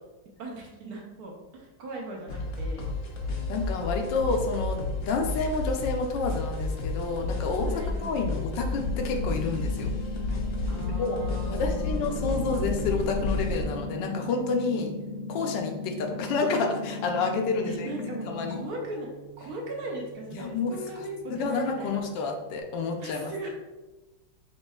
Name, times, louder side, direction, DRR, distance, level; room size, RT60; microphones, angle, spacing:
voice 1, 0.4-2.9 7.6-8.5 10.7-12.6 17.6-19.1 19.4-22.0 23.0-23.5, right 2 dB, 65° right, -1 dB, 1.0 m, -38 dB
sound 1, 2.3-13.6, left 2 dB, 65° left, 0.7 m, -31 dB
voice 2, 3.5-7.7 8.0-9.9 10.7-14.9 15.3-17.9 18.2-18.6 20.4-20.7 21.3-23.3, left 4 dB, 80° left, 3 dB, 1.3 m, -29 dB
sound 2, 8.7-18.7, left 5 dB, 30° right, 0.4 m, -38 dB
Gong, 12.0-22.6, right 10 dB, 85° right, 1.3 m, -45 dB
5.3 x 3.0 x 2.3 m, 1.1 s
omnidirectional pair, 2.0 m